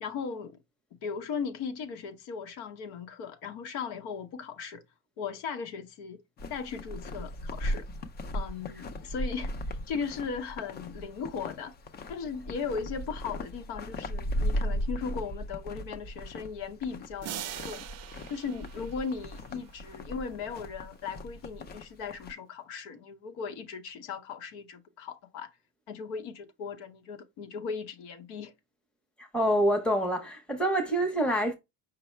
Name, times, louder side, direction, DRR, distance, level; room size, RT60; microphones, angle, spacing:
voice 1, 0.0-0.6 0.9-4.8 5.2-6.2 6.5-7.9 8.3-11.7 12.1-17.9 18.3-25.5 25.9-28.5, left 6 dB, 75° left, 0.9 m, -37 dB
sound 1, 6.4-22.3, equal, 25° left, 0.4 m, -37 dB
sound 2, 17.2-20.0, right 12 dB, 40° right, 0.5 m, -42 dB
voice 2, 29.2-31.5, right 1 dB, 5° left, 0.8 m, -26 dB
5.3 x 2.1 x 4.3 m
cardioid pair, 155°, 39 cm